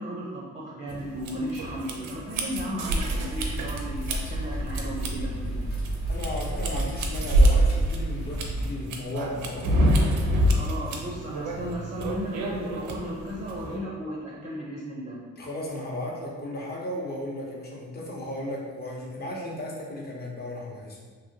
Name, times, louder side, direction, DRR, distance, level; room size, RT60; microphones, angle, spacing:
voice 1, 0.0-5.6 10.5-15.2, equal, 25° right, -4 dB, 0.5 m, -35 dB
sound 1, 0.9-13.8, right 1 dB, 80° right, 0.5 m, -27 dB
sound 2, 3.3-8.7, right 1 dB, 70° left, 1.0 m, -32 dB
voice 2, 6.1-9.7 15.4-21.0, left 1 dB, 30° left, -3 dB, 0.8 m, -35 dB
2.8 x 2.7 x 2.7 m, 1.5 s
cardioid pair, 90°, 30 cm